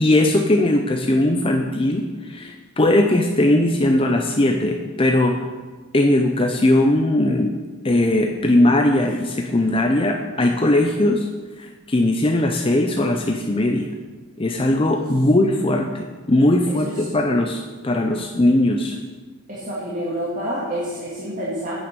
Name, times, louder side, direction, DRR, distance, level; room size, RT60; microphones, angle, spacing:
voice 1, 0.0-5.4 5.9-7.5 7.8-11.3 11.6-13.9 14.4-19.0, left 1 dB, 25° left, 3 dB, 0.7 m, -19 dB
voice 2, 19.5-21.7, equal, 35° right, -7 dB, 2.2 m, -28 dB
9.8 x 8.8 x 6.8 m, 1.3 s
head